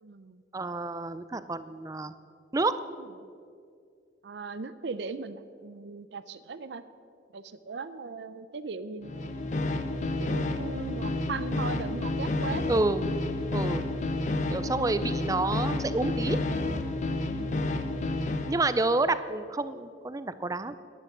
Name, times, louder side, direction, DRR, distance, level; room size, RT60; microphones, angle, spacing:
voice 1, 0.0-0.4 3.2-3.3 4.2-6.8 7.3-9.5 10.2-12.7 17.2-17.5, right 4 dB, 65° right, 13 dB, 0.5 m, -38 dB
voice 2, 0.5-2.1 2.5-2.8 12.7-13.1 13.5-13.8 14.5-16.4 18.5-20.8, right 2 dB, 20° right, 13 dB, 0.4 m, -29 dB
sound 1, 9.0-18.6, left 2 dB, 40° left, 0.7 m, -30 dB
11.0 x 9.9 x 6.8 m, 2.3 s
head